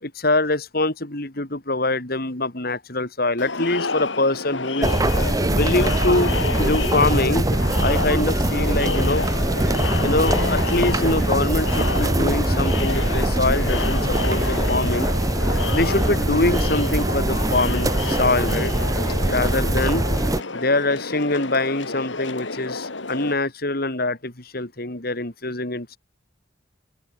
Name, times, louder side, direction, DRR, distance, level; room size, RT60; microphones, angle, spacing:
voice 1, 0.0-4.9 5.5-6.3 6.6-7.5 7.8-9.3 10.0-15.1 15.7-18.7 19.3-20.1 20.5-26.0, left 2 dB, 55° left, 3.5 m, -24 dB
Crowd, 3.4-23.3, left 3 dB, 85° left, 2.8 m, -29 dB
sound 1, 4.8-20.4, right 1 dB, 20° right, 0.8 m, -22 dB
open air
head